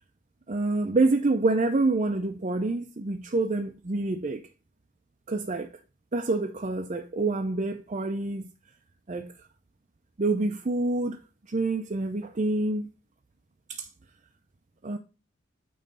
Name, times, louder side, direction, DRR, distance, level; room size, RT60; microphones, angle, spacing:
voice 1, 0.5-4.4 5.3-5.7 6.1-8.5 9.1-9.3 10.2-11.2 11.5-12.9 13.7-13.9 14.8-15.0, right 2 dB, 35° right, 0.5 m, -27 dB
8.9 x 3.2 x 5.4 m
head